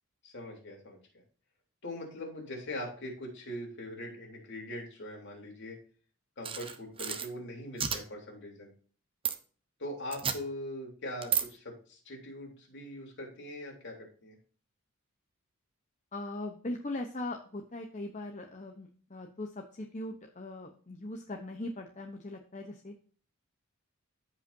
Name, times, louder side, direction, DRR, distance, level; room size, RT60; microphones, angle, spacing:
voice 1, 0.2-1.0 1.8-5.8 6.4-8.7 9.8-14.3, left 1 dB, 50° left, 0 dB, 3.4 m, -41 dB
sound 1, 6.4-7.3 7.8-8.0 9.2-9.4 10.1-10.4 11.2-11.4, right 7 dB, 25° right, 0.8 m, -31 dB
voice 2, 16.1-22.9, left 2 dB, 35° left, 3 dB, 0.9 m, -40 dB
14.5 x 5.4 x 2.7 m, 0.42 s
head